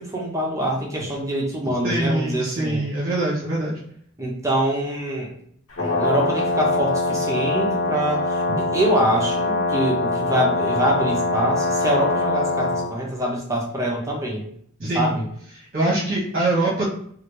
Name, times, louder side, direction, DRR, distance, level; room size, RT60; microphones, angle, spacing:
voice 1, 0.0-2.8 4.2-5.3 5.8-14.4 14.9-15.3, right 1 dB, 15° right, -2 dB, 0.7 m, -24 dB
voice 2, 1.8-3.8 14.8-15.2 15.5-16.9, right 2 dB, 45° right, -6 dB, 1.0 m, -23 dB
Brass instrument, 5.7-12.9, left 2 dB, 85° left, 1.2 m, -23 dB
3.3 x 2.5 x 3.0 m, 0.64 s
head